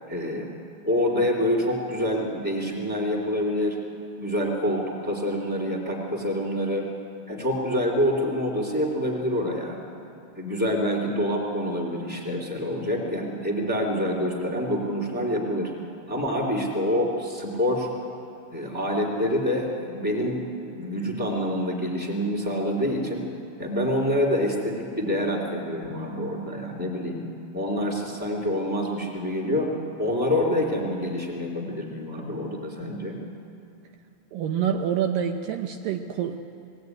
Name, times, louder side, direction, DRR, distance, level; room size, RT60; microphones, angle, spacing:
voice 1, 0.1-0.5 0.8-3.8 4.2-6.9 7.3-9.8 10.4-15.7 16.1-17.9 18.5-20.4 20.7-23.2 23.6-27.2 27.5-29.7 30.0-33.2, equal, 5° right, -1 dB, 2.9 m, -26 dB
voice 2, 34.3-36.4, right 8 dB, 75° right, 4 dB, 2.3 m, -27 dB
21.0 x 17.5 x 9.6 m, 2.7 s
omnidirectional pair, 4.2 m